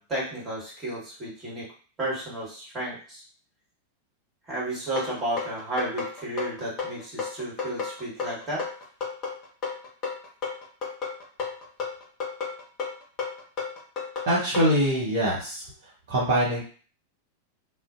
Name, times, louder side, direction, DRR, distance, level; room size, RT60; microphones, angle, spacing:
voice 1, 0.0-1.7 2.0-3.2 4.5-8.6, right 1 dB, 20° right, -5 dB, 1.4 m, -32 dB
sound 1, 5.0-14.7, left 5 dB, 35° left, 1.0 m, -32 dB
voice 2, 14.3-15.6 16.1-16.6, equal, 50° right, -7 dB, 0.8 m, -23 dB
2.4 x 2.1 x 2.4 m, 0.41 s
figure-of-eight pair, 90°, 0 cm